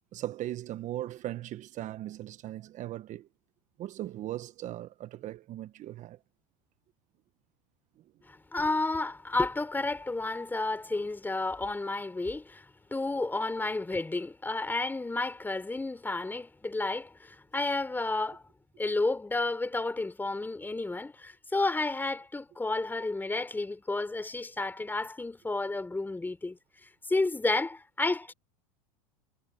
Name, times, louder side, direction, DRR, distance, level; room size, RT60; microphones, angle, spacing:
voice 1, 0.1-3.3 3.8-6.2, right 14 dB, 45° right, 1.2 m, -38 dB
voice 2, 8.3-18.4 18.8-28.3, left 2 dB, 10° left, 4.0 m, -31 dB
hypercardioid pair, 100°, 18 cm